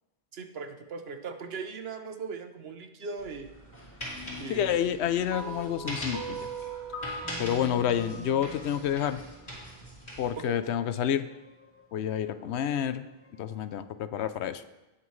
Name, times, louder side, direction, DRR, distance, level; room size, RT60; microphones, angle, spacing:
voice 1, 0.3-3.5 4.4-4.8 10.4-10.6, right 5 dB, 70° right, 7 dB, 1.1 m, -39 dB
sound 1, 3.2-10.3, equal, 35° left, 3.3 m, -42 dB
sound 2, 3.5-13.8, left 3 dB, 15° left, 0.7 m, -52 dB
voice 2, 4.5-6.4 7.4-9.2 10.2-11.3 11.9-13.1 13.4-14.6, left 9 dB, 85° left, 12 dB, 0.9 m, -29 dB
sound 3, 5.3-9.7, right 3 dB, 20° right, 1.6 m, -40 dB
17.5 x 5.9 x 3.2 m, 1.0 s
omnidirectional pair, 1.1 m